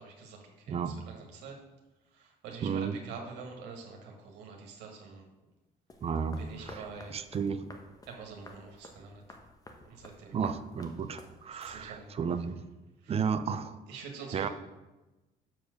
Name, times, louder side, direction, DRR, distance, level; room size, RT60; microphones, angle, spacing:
voice 1, 0.0-1.6 2.1-5.3 6.4-7.1 8.1-9.2 9.8-10.4 11.6-12.2 13.0-13.2 13.9-14.5, right 5 dB, 85° right, 1 dB, 1.7 m, -46 dB
voice 2, 2.6-2.9 6.0-6.8 7.1-7.7 10.3-12.6 13.1-13.8 14.3-14.5, right 6 dB, 35° right, 10 dB, 0.6 m, -33 dB
sound 1, 5.9-12.2, left 2 dB, 20° left, 1.0 m, -52 dB
6.9 x 4.7 x 6.4 m, 1.1 s
cardioid pair, 110°, 17 cm